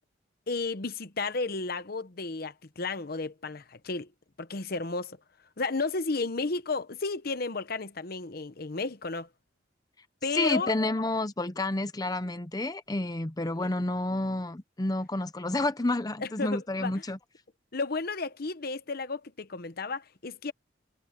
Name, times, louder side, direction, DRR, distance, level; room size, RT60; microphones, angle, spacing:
voice 1, 0.5-4.1 4.4-5.2 5.6-9.3 10.2-10.7 13.6-13.7 16.2-17.0 17.7-20.5, left 3 dB, 55° left, 0.9 m, -33 dB
voice 2, 10.3-17.2, left 2 dB, 20° left, 0.7 m, -30 dB
head